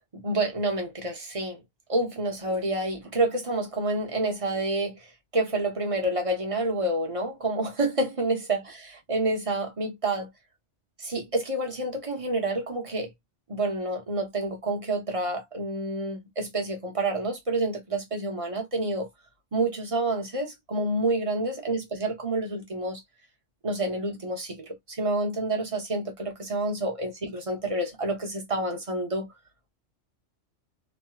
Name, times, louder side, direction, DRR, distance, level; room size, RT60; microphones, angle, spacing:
voice 1, 0.0-1.6 1.9-5.1 5.3-10.3 11.0-13.1 13.5-19.1 19.5-23.0 23.6-29.3, right 2 dB, 30° right, 0.9 m, -28 dB
3.2 x 2.9 x 2.2 m
omnidirectional pair, 1.2 m